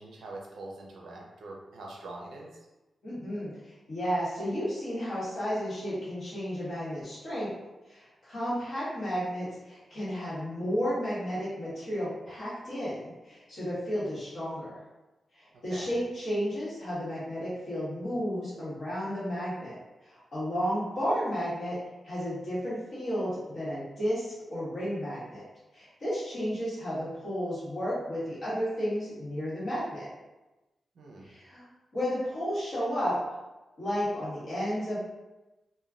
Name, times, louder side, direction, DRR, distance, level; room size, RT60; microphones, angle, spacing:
voice 1, 0.0-2.5 15.7-15.9 31.0-31.3, right 2 dB, 90° right, -1 dB, 0.6 m, -43 dB
voice 2, 3.0-3.5 3.9-7.5 7.9-14.8 15.4-19.7 20.1-21.8 22.0-25.4 25.7-30.1 31.2-31.6 31.9-33.2 33.8-35.0, equal, 45° left, -11 dB, 1.4 m, -32 dB
3.1 x 2.2 x 2.4 m, 1.1 s
wide cardioid pair, 175°, 0 cm